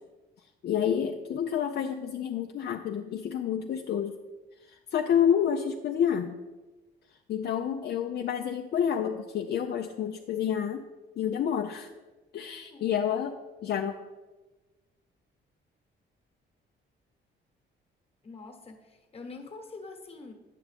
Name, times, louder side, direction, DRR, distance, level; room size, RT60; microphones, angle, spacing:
voice 1, 0.6-4.2 4.7-6.4 7.3-10.8 11.2-11.9 12.3-13.3 13.6-13.9, left 8 dB, 55° left, 4 dB, 0.4 m, -29 dB
voice 2, 12.5-13.0 18.2-20.3, left 3 dB, 30° left, 4 dB, 1.2 m, -45 dB
9.2 x 6.0 x 3.4 m, 1.2 s
cardioid pair, 90°, 20 cm